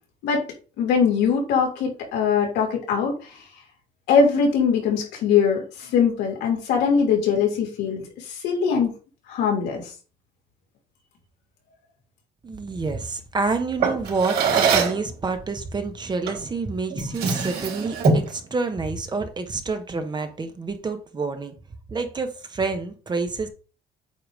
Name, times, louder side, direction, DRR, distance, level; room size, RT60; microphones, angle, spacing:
voice 1, 0.8-3.4 4.1-8.9 9.3-9.8, left 6 dB, 90° left, 2.9 m, -21 dB
voice 2, 12.4-21.5 21.9-23.5, right 4 dB, 25° right, 1.2 m, -28 dB
Drawer open or close, 13.8-15.1 16.3-16.5 16.9-18.4, right 5 dB, 70° right, 3.4 m, -22 dB
8.6 x 2.9 x 5.0 m
cardioid pair, 110°, 17 cm